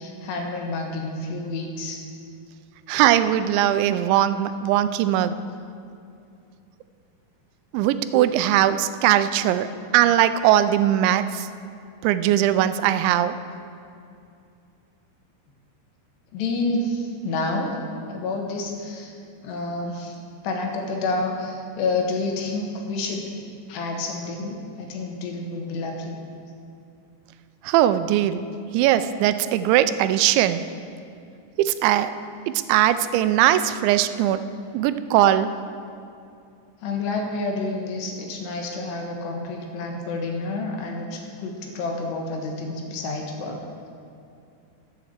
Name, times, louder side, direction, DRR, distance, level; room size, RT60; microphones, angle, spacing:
voice 1, 0.0-2.0 16.3-17.7 18.1-19.2 19.4-20.2 20.4-23.2 23.7-26.1 36.8-43.6, left 3 dB, 75° left, 1 dB, 3.3 m, -29 dB
voice 2, 2.9-5.4 7.7-11.5 12.0-13.4 27.6-28.4 28.7-30.7 31.6-32.2 32.5-34.4 34.7-35.5, right 12 dB, 90° right, 12 dB, 2.9 m, -20 dB
11.5 x 8.2 x 7.4 m, 2.5 s
omnidirectional pair, 5.1 m